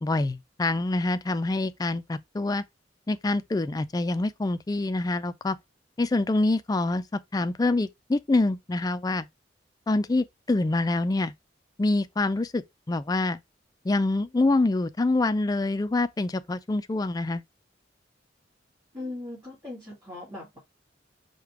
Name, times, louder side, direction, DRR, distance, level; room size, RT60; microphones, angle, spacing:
voice 1, 0.0-2.6 3.1-5.6 6.0-9.3 9.9-11.3 11.8-12.6 12.9-13.4 13.8-17.4, left 2 dB, 20° left, 0.3 m, -26 dB
voice 2, 18.9-20.6, left 2 dB, 20° right, 2.4 m, -39 dB
4.9 x 2.2 x 4.6 m
head